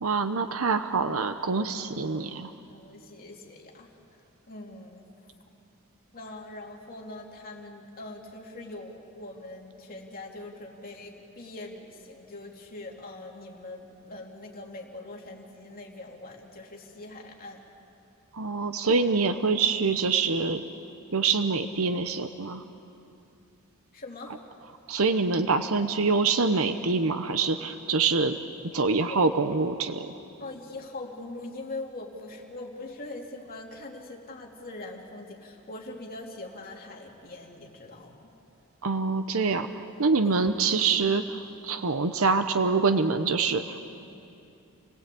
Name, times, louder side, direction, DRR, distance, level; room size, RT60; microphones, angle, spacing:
voice 1, 0.0-2.5 18.3-20.6 21.1-22.6 24.9-28.4 28.7-30.1 38.8-43.8, right 4 dB, 70° right, 8 dB, 0.9 m, -25 dB
voice 2, 2.7-4.2 4.5-5.0 6.1-17.6 23.9-24.4 28.8-29.2 30.4-38.3 40.2-40.4, left 2 dB, 45° left, 0 dB, 3.0 m, -42 dB
28.5 x 17.5 x 8.5 m, 2.8 s
head